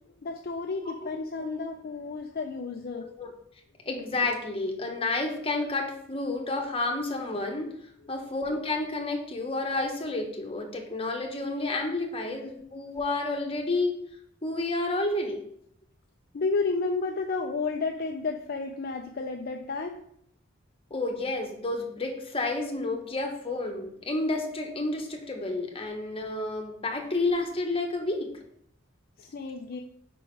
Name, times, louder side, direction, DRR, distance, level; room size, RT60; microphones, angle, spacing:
voice 1, 0.2-3.1 16.3-20.0 29.2-29.8, left 4 dB, 50° left, 4 dB, 0.4 m, -31 dB
voice 2, 2.9-3.3 3.8-7.7 8.1-13.9 14.4-15.4 20.9-28.3, left 2 dB, 30° left, 2 dB, 1.1 m, -30 dB
5.2 x 4.7 x 4.6 m, 0.68 s
head